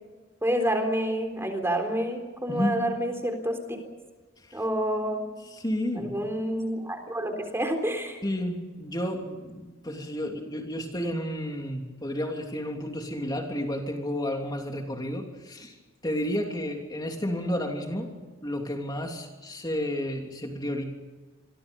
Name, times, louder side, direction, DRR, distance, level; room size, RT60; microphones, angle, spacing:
voice 1, 0.4-3.8 4.5-5.3 5.9-8.2, equal, 10° right, 5 dB, 3.7 m, -28 dB
voice 2, 5.5-6.3 8.2-15.7 16.0-18.1 18.4-20.8, equal, 20° left, 2 dB, 3.1 m, -31 dB
27.5 x 23.5 x 5.5 m, 1.3 s
head